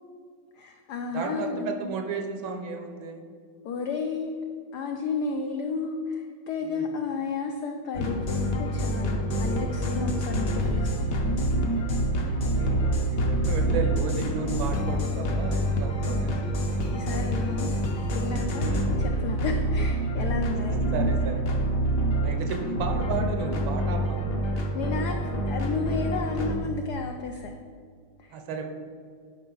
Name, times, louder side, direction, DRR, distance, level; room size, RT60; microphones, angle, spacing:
voice 1, 0.5-1.9 3.6-4.4 4.7-11.2 16.9-21.0 24.7-27.5 28.2-28.4, left 4 dB, 80° left, 4 dB, 0.9 m, -32 dB
voice 2, 1.1-3.2 6.6-6.9 12.0-16.6 18.6-18.9 20.7-21.4 22.2-24.2 28.3-28.7, right 5 dB, 75° right, 5 dB, 1.6 m, -34 dB
sound 1, 7.9-26.5, right 1 dB, 55° left, 1.1 m, -27 dB
10.5 x 5.0 x 3.8 m, 2.1 s
omnidirectional pair, 2.3 m